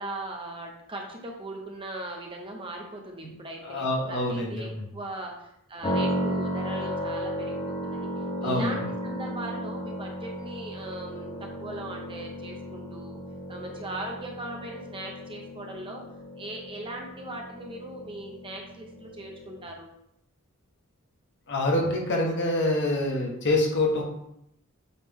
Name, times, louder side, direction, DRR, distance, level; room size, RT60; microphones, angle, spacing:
voice 1, 0.0-8.1 8.4-13.2 13.5-16.1 16.4-19.9, right 1 dB, 25° right, 1 dB, 0.9 m, -39 dB
voice 2, 3.6-4.8 8.4-8.8 21.5-24.0, left 1 dB, 55° left, 0 dB, 1.3 m, -26 dB
sound 1, 5.8-19.7, equal, 25° left, 1.1 m, -34 dB
8.3 x 3.3 x 3.7 m, 0.78 s
head